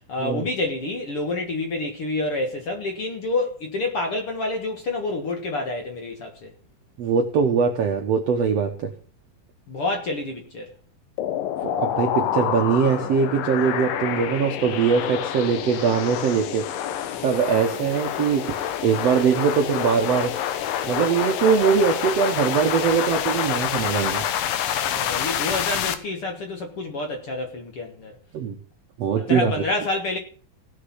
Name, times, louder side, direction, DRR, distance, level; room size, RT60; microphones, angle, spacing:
voice 1, 0.1-6.5 9.7-10.7 17.1-17.2 24.7-28.2 29.2-30.2, left 2 dB, 50° left, 1.9 m, -28 dB
voice 2, 7.0-8.9 11.6-16.7 17.2-18.5 18.8-20.4 20.8-24.3 28.3-28.6 29.0-29.5, right 6 dB, 70° right, 1.5 m, -22 dB
sound 1, 11.2-25.9, left 10 dB, 70° left, 2.6 m, -27 dB
18.0 x 6.6 x 5.6 m
omnidirectional pair, 4.3 m